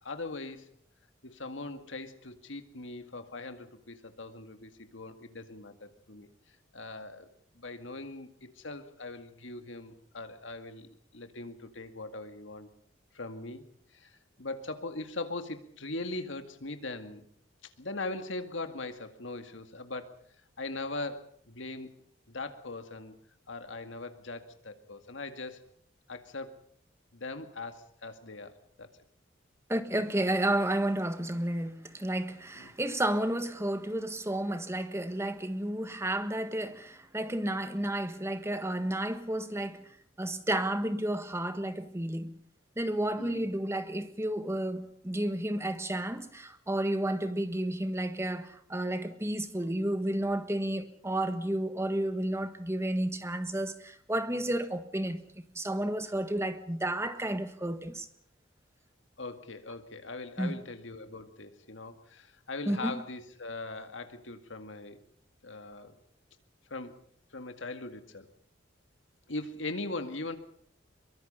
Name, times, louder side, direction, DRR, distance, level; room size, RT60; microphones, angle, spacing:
voice 1, 0.0-0.7 1.2-6.3 6.7-7.3 7.5-12.7 13.1-13.6 13.9-17.3 17.6-20.1 20.6-22.0 22.3-23.1 23.5-25.6 26.1-26.6 27.1-28.9 32.5-32.7 43.2-43.5 59.2-65.0 65.4-66.0 66.7-67.0 67.3-68.3 69.3-70.4, left 2 dB, 75° left, 2.1 m, -40 dB
voice 2, 29.7-39.9 40.2-42.3 42.8-58.1 60.4-60.6 62.7-62.9, right 1 dB, 15° right, 1.5 m, -31 dB
23.0 x 22.5 x 5.6 m
head